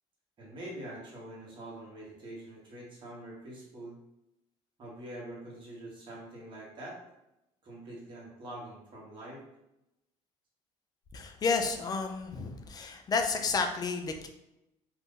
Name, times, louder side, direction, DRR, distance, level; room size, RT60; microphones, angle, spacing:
voice 1, 0.4-4.0 4.8-7.0 7.6-9.4, right 1 dB, 40° right, -4 dB, 1.2 m, -45 dB
voice 2, 11.1-14.3, left 4 dB, 30° left, 5 dB, 0.4 m, -31 dB
2.5 x 2.5 x 3.7 m, 0.89 s
cardioid pair, 125°, 13 cm